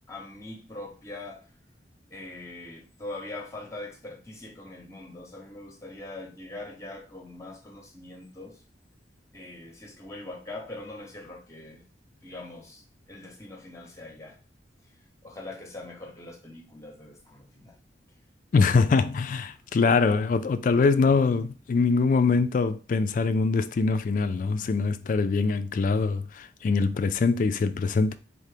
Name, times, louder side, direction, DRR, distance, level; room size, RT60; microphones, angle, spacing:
voice 1, 0.1-1.4 2.1-8.6 9.3-11.8 12.2-12.8 13.1-14.4 15.2-17.7, left 2 dB, 15° left, 0.7 m, -42 dB
voice 2, 18.5-28.2, left 4 dB, 50° left, 0.3 m, -23 dB
4.1 x 2.8 x 3.3 m
head